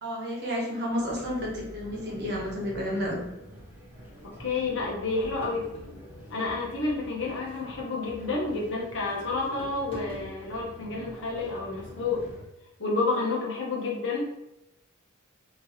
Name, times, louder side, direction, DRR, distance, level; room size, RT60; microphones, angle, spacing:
voice 1, 0.0-3.2 13.1-13.2, equal, 50° right, -3 dB, 1.0 m, -31 dB
sound 1, 0.9-12.4, equal, 10° right, 1.0 m, -46 dB
voice 2, 4.4-5.7 6.3-12.2 12.8-14.5, left 3 dB, 60° left, -3 dB, 1.0 m, -30 dB
sound 2, 5.4-6.0 7.3-7.6 9.6-10.3, left 1 dB, 25° left, 1.3 m, -43 dB
3.2 x 2.9 x 2.8 m, 0.89 s
head